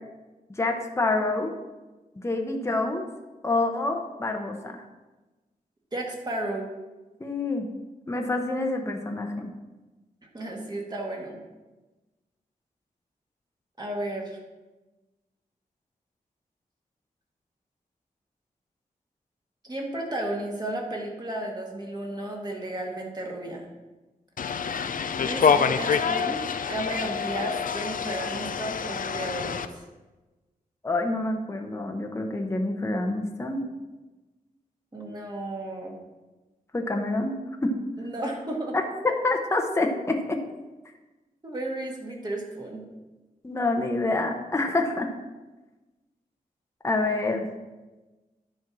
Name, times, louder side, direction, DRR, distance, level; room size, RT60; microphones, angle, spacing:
voice 1, 0.6-1.5 2.2-3.1 3.4-4.8 7.2-7.7 8.1-9.5 30.8-33.6 36.7-37.3 37.6-37.7 38.7-40.4 43.4-45.1 46.8-47.5, left 2 dB, 20° left, 2 dB, 0.9 m, -27 dB
voice 2, 5.9-6.7 10.3-11.4 13.8-14.4 19.6-23.7 25.2-26.4 26.7-29.9 34.9-36.0 38.0-38.8 41.4-42.8, right 1 dB, 25° right, 0 dB, 1.9 m, -33 dB
sound 1, 24.4-29.7, left 6 dB, 65° left, 0.5 m, -26 dB
10.5 x 4.5 x 6.1 m, 1.2 s
wide cardioid pair, 110°, 15 cm